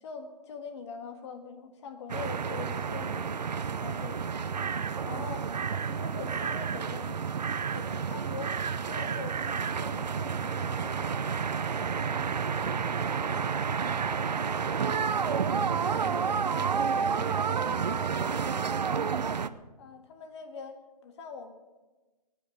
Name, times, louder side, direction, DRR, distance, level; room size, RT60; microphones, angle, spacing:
voice 1, 0.0-3.5 3.8-4.2 5.0-7.3 7.7-8.6 8.9-11.4 16.6-16.7 19.8-21.5, left 5 dB, 45° left, 6 dB, 1.8 m, -43 dB
sound 1, 2.1-19.5, right 6 dB, 85° right, 0.7 m, -30 dB
voice 2, 15.2-19.1, right 4 dB, 10° right, 4 dB, 0.7 m, -46 dB
22.0 x 9.4 x 5.1 m, 1.2 s
hypercardioid pair, 145°, 21 cm